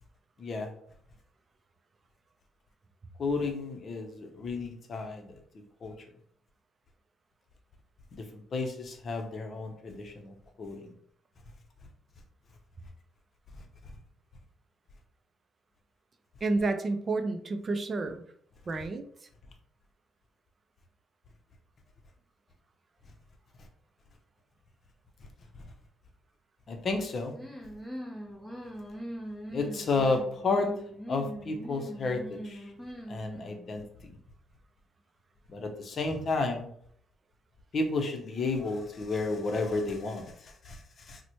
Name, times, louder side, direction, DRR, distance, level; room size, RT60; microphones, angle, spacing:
voice 1, 0.4-0.7 3.2-5.3 5.8-5.9 8.1-10.9 26.7-27.4 29.5-30.7 31.1-32.7 33.1-34.1 35.5-36.7 37.7-41.2, left 3 dB, 50° left, 4 dB, 0.6 m, -32 dB
voice 2, 16.4-18.2 18.7-19.1, right 3 dB, 40° right, 8 dB, 0.4 m, -30 dB
sound 1, 27.3-33.7, equal, ahead, 0.8 m, -42 dB
4.0 x 2.1 x 2.9 m, 0.62 s
cardioid pair, 90°, 0 cm